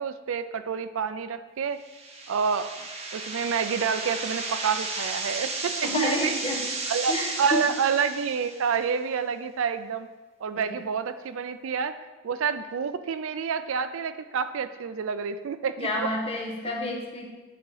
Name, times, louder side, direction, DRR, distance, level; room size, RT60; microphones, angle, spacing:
voice 1, 0.0-1.8 2.3-2.7 3.1-6.3 6.9-10.1 10.4-12.0 12.2-16.1, right 6 dB, 70° right, 11 dB, 0.4 m, -28 dB
sound 1, 1.8-8.8, right 3 dB, 30° right, 0.7 m, -34 dB
voice 2, 5.8-6.7 7.1-7.7 10.5-10.8 15.8-17.3, left 1 dB, 25° left, -1 dB, 1.1 m, -30 dB
9.8 x 4.1 x 4.8 m, 1.3 s
head